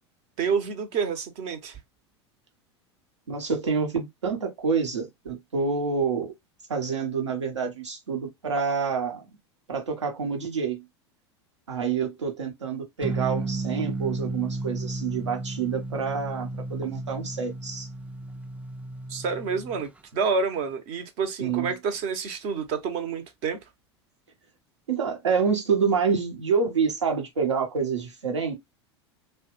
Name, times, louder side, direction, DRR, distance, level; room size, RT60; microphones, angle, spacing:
voice 1, 0.4-1.8 19.1-23.6, right 5 dB, 50° right, 0.9 m, -28 dB
voice 2, 3.3-6.3 6.7-9.2 9.7-10.8 11.7-17.9 21.4-21.7 24.9-28.5, right 5 dB, 85° right, 1.0 m, -27 dB
sound 1, 13.0-19.9, right 2 dB, 10° right, 0.3 m, -33 dB
3.2 x 2.2 x 3.0 m
hypercardioid pair, 85°, 15 cm